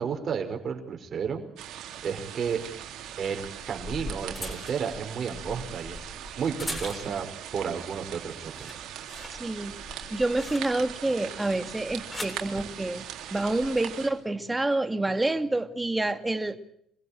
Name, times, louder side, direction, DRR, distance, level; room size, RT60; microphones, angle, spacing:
voice 1, 0.0-1.4 2.0-2.6 3.2-6.0 6.4-7.3 7.5-8.7, right 6 dB, 50° right, 5.3 m, -32 dB
sound 1, 1.6-14.1, right 10 dB, 75° right, 3.8 m, -41 dB
sound 2, 3.4-7.4 7.8-8.2 8.4-11.0 11.8-12.5 13.4-13.7, left 2 dB, 15° left, 7.7 m, -41 dB
voice 2, 9.3-9.7 10.1-13.0 13.3-16.6, right 2 dB, 15° right, 2.1 m, -28 dB
26.0 x 16.0 x 9.0 m
supercardioid pair, 75°, 0 cm